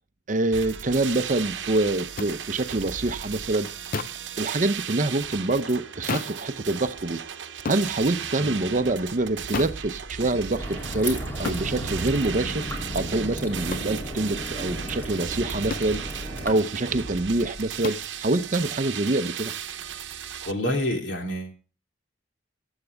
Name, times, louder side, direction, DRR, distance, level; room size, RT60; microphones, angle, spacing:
voice 1, 0.3-3.7 4.4-7.2 7.6-12.7 12.9-19.5, right 2 dB, 40° right, 0.6 m, -26 dB
sound 1, 0.5-20.5, right 8 dB, 70° right, 0.9 m, -36 dB
sound 2, 2.2-2.3 3.9-4.3 6.1-6.4 7.6-7.9 9.5-9.8 11.4-11.7 13.7-13.9 15.7-16.0 17.8-18.1, left 4 dB, 45° left, 0.6 m, -31 dB
sound 3, 10.6-16.5, equal, 10° left, 3.0 m, -34 dB
voice 2, 20.5-21.5, equal, 65° left, 3.0 m, -27 dB
21.5 x 8.1 x 3.4 m
head